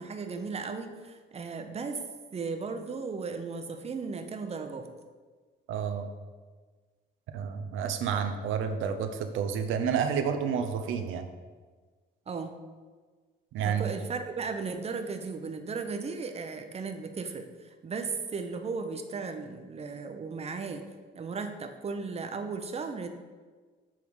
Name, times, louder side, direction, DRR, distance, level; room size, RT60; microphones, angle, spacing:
voice 1, 0.0-2.0 2.3-4.9 12.3-12.5 13.6-20.9 21.1-23.1, right 4 dB, 30° right, 6 dB, 0.6 m, -36 dB
voice 2, 5.7-6.1 7.3-11.3 13.5-13.9, right 7 dB, 85° right, 7 dB, 0.5 m, -30 dB
7.2 x 3.5 x 4.7 m, 1.4 s
cardioid pair, 90°, 20 cm